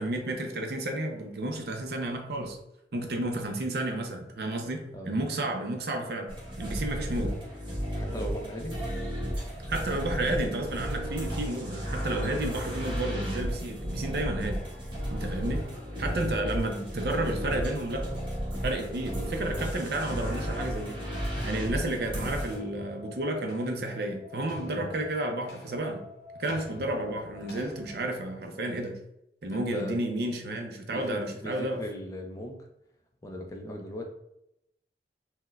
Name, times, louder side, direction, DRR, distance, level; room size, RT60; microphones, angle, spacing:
voice 1, 0.0-2.6 2.9-7.4 9.7-14.7 15.1-15.7 16.0-18.2 18.6-21.0 21.4-26.1 26.4-29.0 29.4-31.8, right 1 dB, 65° right, 3 dB, 0.5 m, -31 dB
sound 1, 6.3-22.6, equal, 30° right, 1.0 m, -33 dB
voice 2, 8.0-8.7 15.9-16.2 24.6-25.0 29.5-30.0 30.9-32.7 33.2-34.0, equal, 20° left, 2 dB, 0.3 m, -39 dB
sound 2, 20.8-28.1, left 3 dB, 70° left, 0.6 m, -48 dB
4.2 x 2.1 x 2.2 m, 0.80 s
head